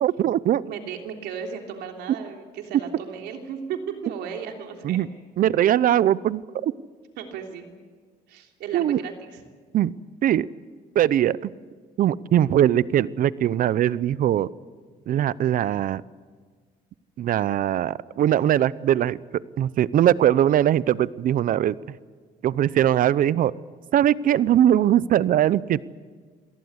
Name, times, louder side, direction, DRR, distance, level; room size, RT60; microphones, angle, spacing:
voice 1, 0.0-0.6 4.8-5.1 5.4-6.7 8.7-9.0 9.7-9.9 10.2-10.5 10.9-11.5 12.0-14.5 15.1-16.0 17.2-19.2 19.6-21.7 22.4-23.5 23.9-25.9, right 11 dB, 55° right, 19 dB, 0.7 m, -21 dB
voice 2, 0.7-5.0 7.2-7.7 8.3-9.4, right 7 dB, 80° right, 3 dB, 3.4 m, -35 dB
26.5 x 18.0 x 8.1 m, 1.5 s
cardioid pair, 110°, 17 cm